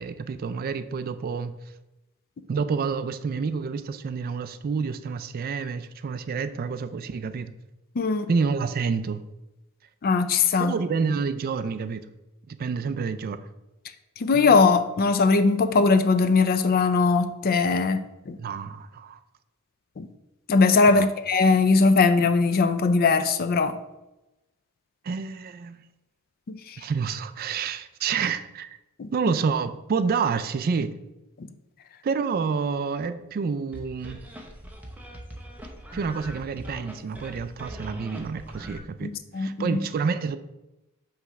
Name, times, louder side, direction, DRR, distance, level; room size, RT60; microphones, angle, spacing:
voice 1, 0.0-1.5 2.5-7.5 8.3-9.2 10.6-12.0 12.5-13.4 14.3-14.6 18.4-19.2 20.8-21.1 25.0-25.8 26.8-28.8 29.1-30.9 32.0-34.2 35.9-40.4, right 5 dB, 45° right, 0.3 m, -28 dB
voice 2, 8.0-8.3 10.0-10.7 14.2-18.4 20.0-20.1 20.5-23.8 26.5-26.8 29.0-29.1 31.4-31.5 39.0-39.8, left 4 dB, 45° left, 0.4 m, -20 dB
sound 1, 33.7-38.8, equal, 10° right, 0.7 m, -41 dB
5.7 x 3.1 x 5.6 m
head